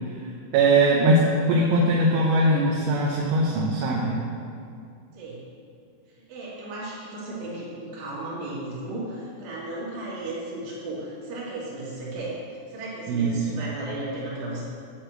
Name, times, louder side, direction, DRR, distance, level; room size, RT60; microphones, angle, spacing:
voice 1, 0.5-4.2 13.1-13.6, right 1 dB, 80° right, -4 dB, 3.3 m, -21 dB
voice 2, 6.3-12.4 12.7-14.6, right 2 dB, 65° right, -7 dB, 4.2 m, -35 dB
10.0 x 4.4 x 7.8 m, 2.4 s
omnidirectional pair, 5.5 m